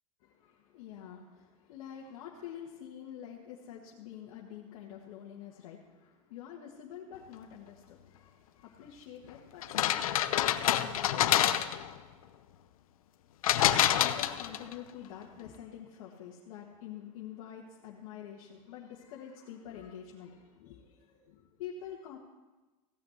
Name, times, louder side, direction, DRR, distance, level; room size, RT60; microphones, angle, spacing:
voice 1, 0.2-11.5 13.5-22.2, left 9 dB, 70° left, -2 dB, 1.7 m, -47 dB
sound 1, 9.6-11.9 13.4-14.7, left 11 dB, 85° left, 0.7 m, -27 dB
16.0 x 6.1 x 7.9 m, 1.2 s
supercardioid pair, 130°, 18 cm